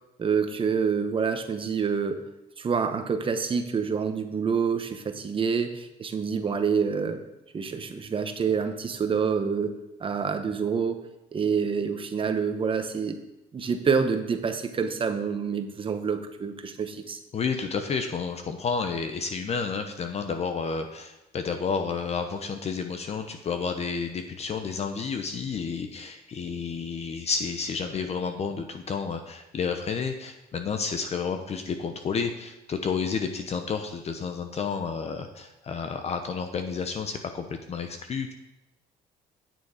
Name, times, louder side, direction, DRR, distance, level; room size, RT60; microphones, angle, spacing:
voice 1, 0.2-2.2 2.6-7.2 7.5-9.7 10.0-11.0 11.3-13.2 13.5-17.2, right 6 dB, 30° right, 7 dB, 1.0 m, -27 dB
voice 2, 17.3-38.3, left 5 dB, 40° left, 6 dB, 0.8 m, -31 dB
9.2 x 7.0 x 4.9 m, 0.93 s
cardioid pair, 110°, 17 cm